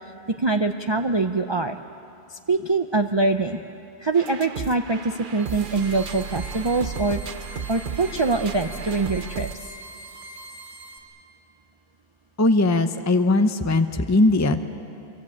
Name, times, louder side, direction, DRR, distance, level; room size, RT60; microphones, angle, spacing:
voice 1, 0.3-1.8 2.5-3.6 4.0-7.2 7.7-9.5, right 3 dB, 30° right, 5 dB, 0.6 m, -23 dB
sound 1, 4.1-9.5, right 6 dB, 55° right, 1.0 m, -34 dB
sound 2, 5.2-11.0, right 1 dB, 70° right, 3.9 m, -43 dB
voice 2, 12.4-14.6, left 2 dB, 20° left, 8 dB, 0.7 m, -19 dB
26.0 x 23.5 x 8.7 m, 2.6 s
omnidirectional pair, 1.1 m